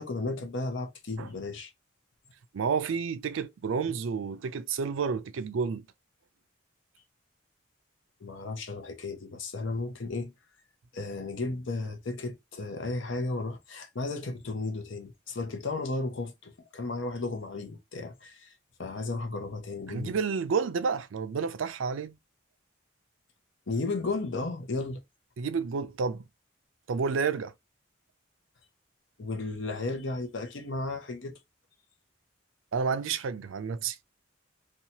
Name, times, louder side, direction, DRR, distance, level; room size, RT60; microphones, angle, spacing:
voice 1, 0.0-1.7 8.2-10.3 10.9-18.5 18.8-20.2 23.7-25.0 29.2-31.3, left 3 dB, 70° left, 0.7 m, -34 dB
voice 2, 2.5-5.9 19.9-22.2 25.4-26.2 26.9-27.5 32.7-34.0, right 5 dB, 80° right, 0.4 m, -30 dB
2.8 x 2.3 x 2.7 m
head